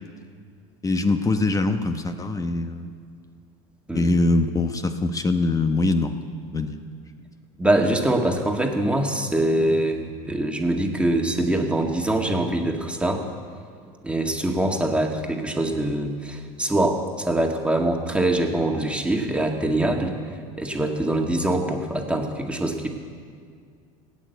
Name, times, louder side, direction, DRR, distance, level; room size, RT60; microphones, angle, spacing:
voice 1, 0.8-2.9 3.9-6.2 6.5-6.8, left 2 dB, 20° left, 8 dB, 1.0 m, -23 dB
voice 2, 7.6-13.3 14.0-20.1 20.6-22.9, right 1 dB, 5° right, 2 dB, 2.0 m, -23 dB
17.0 x 9.2 x 8.1 m, 2.1 s
supercardioid pair, 100°, 17 cm